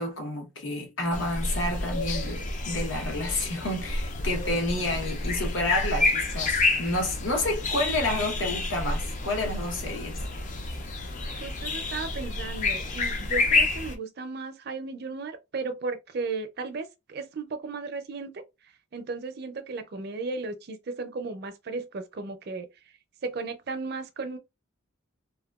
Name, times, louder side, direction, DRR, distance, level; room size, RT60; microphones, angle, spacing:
voice 1, 0.0-10.2, left 1 dB, 70° left, 1.0 m, -30 dB
sound 1, 1.1-13.9, left 3 dB, 40° left, 0.4 m, -29 dB
voice 2, 11.3-18.4 18.9-22.7 23.2-24.4, right 3 dB, 50° right, 0.5 m, -35 dB
2.8 x 2.2 x 2.3 m
head